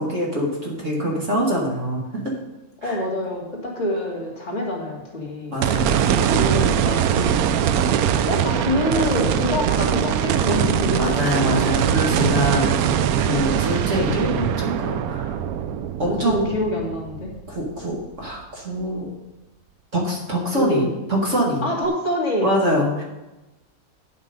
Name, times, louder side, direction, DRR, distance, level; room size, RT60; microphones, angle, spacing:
voice 1, 0.0-2.0 2.8-3.0 5.5-6.2 11.0-15.4 16.0-16.5 17.5-19.1 19.9-21.7 22.4-23.0, equal, 55° right, -2 dB, 2.6 m, -24 dB
voice 2, 2.8-11.6 12.8-12.9 16.1-17.3 20.6-20.9 21.6-22.5, left 1 dB, 50° left, -1 dB, 2.7 m, -26 dB
sound 1, 5.6-17.9 18.4-18.5 21.8-21.9, right 9 dB, 80° right, 1.0 m, -22 dB
10.0 x 7.4 x 5.4 m, 1.0 s
omnidirectional pair, 1.5 m